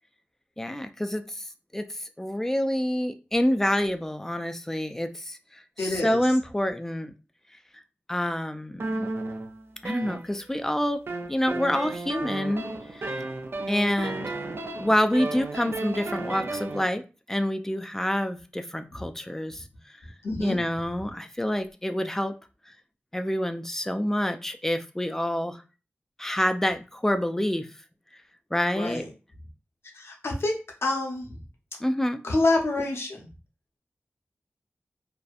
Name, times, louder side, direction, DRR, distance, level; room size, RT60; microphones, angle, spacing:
voice 1, 0.6-1.4 1.7-7.1 8.1-9.1 9.8-11.0 11.3-12.6 12.9-13.2 13.7-14.3 14.8-17.0 17.3-19.6 20.4-22.3 23.1-25.6 26.2-27.7 28.5-29.0 31.8-32.2, left 1 dB, 10° left, 8 dB, 0.3 m, -27 dB
voice 2, 5.8-6.2 18.9-19.0 20.2-20.6 28.7-29.1 29.9-31.4 32.2-33.3, left 2 dB, 75° left, 1 dB, 0.7 m, -27 dB
sound 1, 8.8-10.6 11.1-16.9, right 2 dB, 60° right, 0.4 m, -33 dB
2.6 x 2.1 x 2.4 m, 0.32 s
wide cardioid pair, 60°, 4 cm